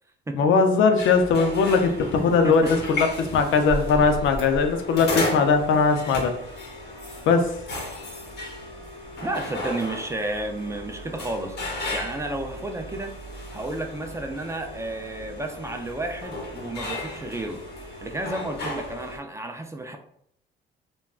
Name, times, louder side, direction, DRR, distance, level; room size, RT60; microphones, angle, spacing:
voice 1, 0.3-6.4 7.3-7.5, left 5 dB, 75° left, 6 dB, 0.5 m, -20 dB
sound 1, 1.0-19.2, left 1 dB, 55° left, 1.0 m, -34 dB
voice 2, 9.2-11.6 11.9-13.2 13.5-20.0, right 2 dB, 15° right, 4 dB, 0.3 m, -32 dB
3.5 x 2.2 x 2.3 m, 0.72 s
cardioid pair, 90°, 20 cm